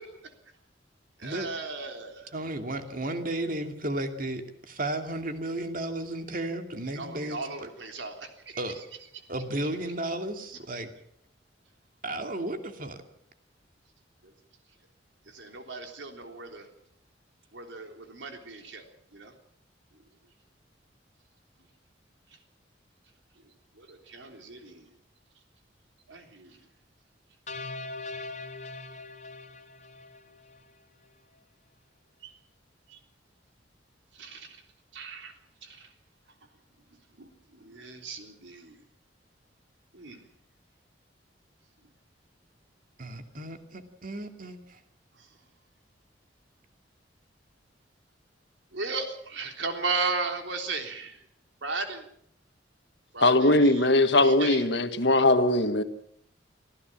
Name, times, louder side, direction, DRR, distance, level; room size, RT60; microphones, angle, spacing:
voice 1, 1.2-2.3 6.9-8.6 14.2-14.3 15.3-16.7 17.5-18.8 19.1-19.3 23.4-24.9 26.1-26.6 32.2-32.3 32.9-33.0 34.1-34.6 34.9-35.3 35.6-35.9 37.2-38.8 39.9-40.3 45.2-45.4 48.7-51.2 51.6-52.1 53.1-53.9 54.2-54.6, right 3 dB, 75° right, 5 dB, 3.6 m, -36 dB
voice 2, 2.3-7.4 8.6-8.8 9.3-10.9 12.0-13.0 43.0-44.8, right 1 dB, 50° right, 6 dB, 2.5 m, -33 dB
sound 1, 27.5-30.8, left 3 dB, 40° left, 1.7 m, -41 dB
voice 3, 53.2-55.8, left 2 dB, 65° left, 9 dB, 1.7 m, -21 dB
25.0 x 15.5 x 7.4 m, 0.68 s
head